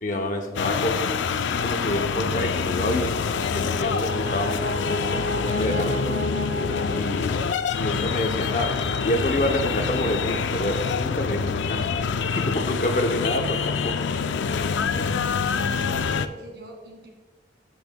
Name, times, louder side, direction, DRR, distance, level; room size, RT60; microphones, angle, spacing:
voice 1, 0.0-1.1 1.5-5.2 5.6-6.2 6.9-7.3 7.7-8.7 9.0-11.9 12.3-13.9, left 1 dB, 45° left, 4 dB, 0.7 m, -28 dB
sound 1, 0.6-16.3, left 5 dB, 80° left, 0.4 m, -26 dB
Brass instrument, 3.4-7.8, equal, 90° right, 1.6 m, -32 dB
voice 2, 15.7-17.1, right 1 dB, 65° right, 0 dB, 2.0 m, -43 dB
15.0 x 5.4 x 2.2 m, 1.2 s
head